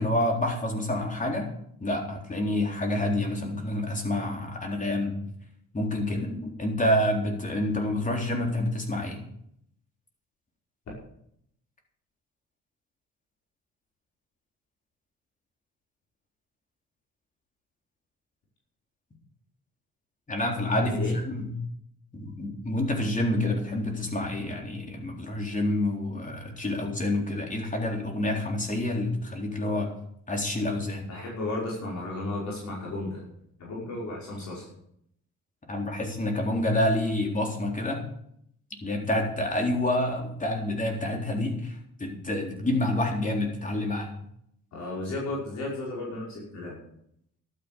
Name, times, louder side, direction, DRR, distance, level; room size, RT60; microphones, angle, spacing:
voice 1, 0.0-1.5 1.8-5.2 5.7-9.2 20.3-21.5 22.1-29.9 30.3-31.1 35.7-38.0 38.8-44.1, left 1 dB, 25° left, 1 dB, 3.9 m, -28 dB
voice 2, 20.8-21.2 31.1-33.2 33.6-34.7 44.7-46.8, left 2 dB, 65° left, -4 dB, 5.6 m, -34 dB
12.0 x 9.7 x 7.1 m, 0.72 s
cardioid pair, 90°, 30 cm